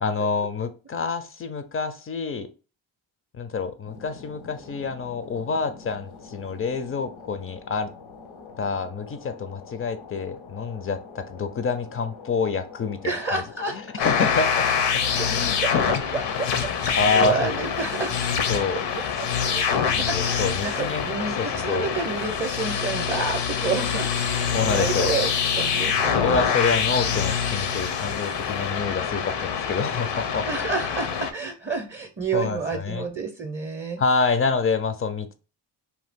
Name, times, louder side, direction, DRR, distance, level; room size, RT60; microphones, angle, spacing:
voice 1, 0.0-2.5 3.3-7.9 8.6-13.4 13.7-14.7 15.1-15.8 16.7-17.5 18.5-18.8 19.9-21.1 21.4-21.9 24.5-25.1 26.0-30.7 32.3-33.1 34.0-35.3, left 4 dB, 30° left, 10 dB, 0.4 m, -27 dB
sound 1, 3.8-18.3, left 5 dB, 80° left, 1.0 m, -45 dB
voice 2, 13.0-13.8 15.2-15.3 15.6-16.5 16.8-18.2 19.4-26.3 30.5-34.0, right 4 dB, 25° right, 4 dB, 0.5 m, -30 dB
sound 2, 14.0-31.3, left 7 dB, 65° left, 0.6 m, -25 dB
2.7 x 2.3 x 3.5 m, 0.34 s
supercardioid pair, 60°, 46 cm